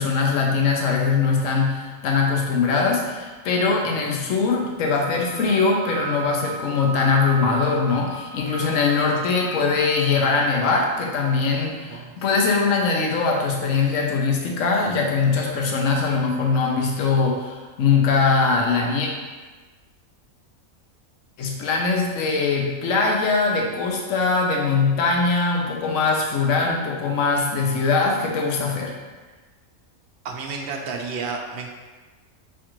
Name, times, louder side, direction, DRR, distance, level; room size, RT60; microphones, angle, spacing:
voice 1, 0.0-19.1 21.4-28.9, left 4 dB, 65° left, 0 dB, 1.0 m, -21 dB
Wind instrument woodwind instrument, 5.1-10.4, right 6 dB, 85° right, 1.1 m, -36 dB
voice 2, 11.7-12.1 30.2-31.7, right 4 dB, 60° right, 1 dB, 0.6 m, -31 dB
6.4 x 2.5 x 3.0 m, 1.3 s
omnidirectional pair, 1.5 m